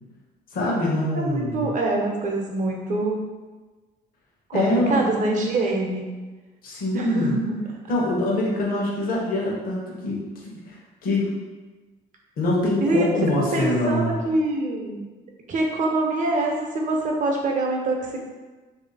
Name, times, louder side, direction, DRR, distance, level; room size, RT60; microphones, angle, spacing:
voice 1, 0.5-1.7 4.5-5.1 6.6-7.3 7.9-10.2 10.7-11.3 12.4-14.2, left 1 dB, 60° left, -3 dB, 1.0 m, -24 dB
voice 2, 1.1-3.2 4.5-6.1 6.9-7.6 12.8-13.0 13.5-15.0 15.5-18.2, right 2 dB, 50° right, 0 dB, 0.8 m, -24 dB
3.2 x 2.7 x 4.0 m, 1.2 s
cardioid pair, 110°, 17 cm